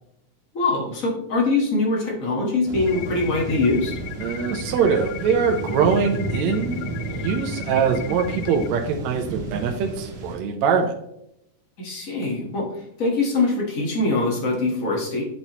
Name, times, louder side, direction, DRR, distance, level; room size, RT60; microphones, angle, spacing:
voice 1, 0.5-3.9 11.8-12.7 13.0-15.2, left 3 dB, 45° left, -1 dB, 1.1 m, -23 dB
sound 1, 2.7-10.4, right 2 dB, 50° right, 1.9 m, -32 dB
sound 2, 2.9-8.7, left 14 dB, 85° left, 1.5 m, -38 dB
voice 2, 4.2-6.8 7.1-10.9, right 6 dB, 75° right, 3 dB, 1.8 m, -23 dB
10.5 x 4.2 x 3.0 m, 0.77 s
omnidirectional pair, 3.6 m